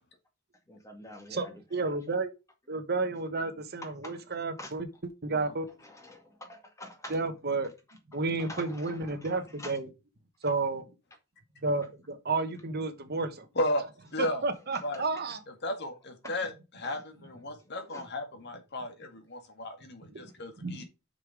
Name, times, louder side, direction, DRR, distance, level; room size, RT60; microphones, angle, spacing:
voice 1, 0.7-1.5 4.0-4.2 4.6-4.7 5.8-7.2 8.1-9.7 16.8-17.0 17.9-18.1, left 1 dB, 15° left, 2.0 m, -46 dB
voice 2, 1.3-2.3 2.7-4.9 5.2-5.7 7.1-7.7 8.1-9.9 10.4-10.9 11.6-13.5 14.2-15.4 20.1-20.2 20.6-20.8, right 3 dB, 45° right, 1.1 m, -31 dB
voice 3, 14.1-14.4 14.8-15.0 15.6-20.8, left 1 dB, 50° left, 1.8 m, -34 dB
6.5 x 5.5 x 4.9 m
head